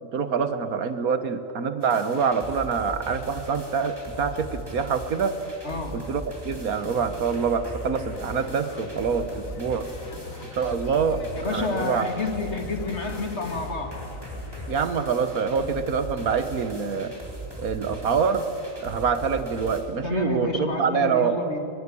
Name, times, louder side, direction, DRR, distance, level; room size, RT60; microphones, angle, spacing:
voice 1, 0.0-5.4 5.9-9.9 10.6-12.1 14.7-17.1 17.6-18.5 18.8-21.4, right 6 dB, 80° right, 10 dB, 1.8 m, -25 dB
sound 1, 1.8-19.8, right 1 dB, 15° right, 3.8 m, -39 dB
voice 2, 5.6-6.1 11.4-14.0 20.0-21.6, left 3 dB, 50° left, 5 dB, 2.4 m, -29 dB
sound 2, 8.1-14.7, left 5 dB, 70° left, 1.5 m, -43 dB
23.5 x 21.5 x 8.6 m, 2.9 s
omnidirectional pair, 1.5 m